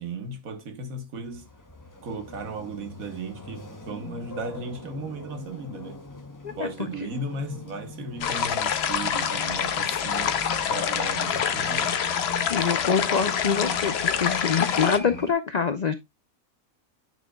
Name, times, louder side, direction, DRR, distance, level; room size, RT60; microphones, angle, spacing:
voice 1, 0.0-1.5 2.0-6.1 6.6-10.4 10.7-12.0, right 2 dB, 85° right, 1.6 m, -36 dB
sound 1, 1.2-15.3, left 2 dB, 15° left, 0.7 m, -41 dB
sound 2, 8.2-15.0, left 8 dB, 60° left, 0.8 m, -26 dB
voice 2, 12.5-15.9, left 6 dB, 75° left, 0.3 m, -25 dB
9.1 x 6.1 x 2.3 m
omnidirectional pair, 1.4 m